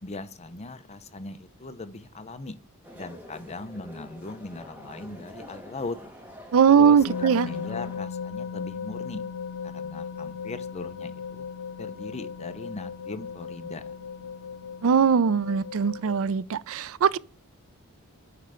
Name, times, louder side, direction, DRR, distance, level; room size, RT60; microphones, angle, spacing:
voice 1, 0.0-2.6 2.9-6.0 6.7-9.2 9.6-11.4 11.8-13.9, left 2 dB, 30° left, 0.7 m, -39 dB
sound 1, 2.8-8.0, left 1 dB, 5° right, 1.6 m, -45 dB
voice 2, 6.5-7.5 14.8-17.2, right 7 dB, 65° right, 0.4 m, -20 dB
sound 2, 7.1-16.2, left 6 dB, 80° left, 0.4 m, -37 dB
9.4 x 3.3 x 5.0 m
head